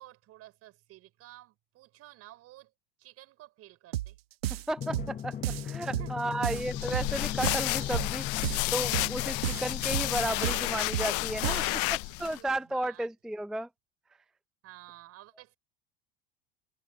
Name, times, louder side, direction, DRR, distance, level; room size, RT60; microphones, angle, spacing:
voice 1, 0.0-2.7 3.0-4.2 6.0-6.6 11.4-13.1 14.6-15.6, right 16 dB, 55° right, 5.5 m, -52 dB
sound 1, 3.9-4.1 4.4-5.1 5.4-6.1 6.4-7.1 7.4-8.1 8.4-9.1 9.4-10.1 10.4-11.1 11.4-11.9, right 14 dB, 85° right, 1.1 m, -33 dB
voice 2, 4.7-5.4 5.6-11.6 12.2-13.7, right 1 dB, ahead, 0.4 m, -33 dB
Drum, 4.8-10.3, left 8 dB, 25° left, 0.9 m, -39 dB
sound 2, 6.5-12.4, left 25 dB, 55° left, 0.5 m, -31 dB
hypercardioid pair, 80°, 29 cm